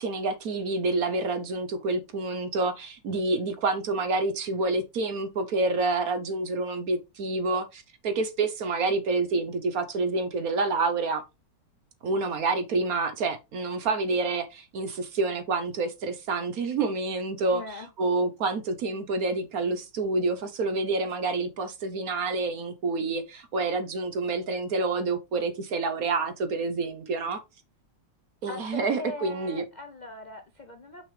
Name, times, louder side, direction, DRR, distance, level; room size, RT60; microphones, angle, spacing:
voice 1, 0.0-11.2 12.0-17.6 18.0-27.4 28.4-29.6, right 3 dB, 60° right, 1.1 m, -28 dB
voice 2, 17.5-17.9 28.5-31.0, left 2 dB, 70° left, 0.4 m, -40 dB
6.0 x 5.8 x 3.3 m
omnidirectional pair, 2.1 m